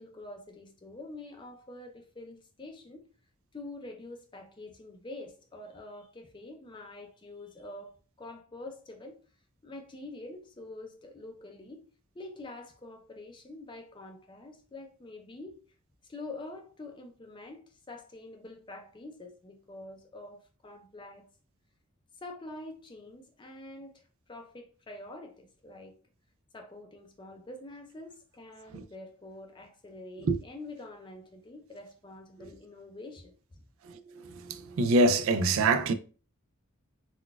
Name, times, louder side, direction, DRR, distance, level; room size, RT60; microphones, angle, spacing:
voice 1, 0.0-3.1 3.5-7.9 8.2-9.2 9.6-11.8 12.1-15.6 16.1-21.3 22.2-25.9 26.5-33.6, left 2 dB, 20° left, 0.4 m, -46 dB
voice 2, 34.2-35.9, right 2 dB, 70° right, 0.3 m, -25 dB
3.9 x 2.3 x 2.2 m
head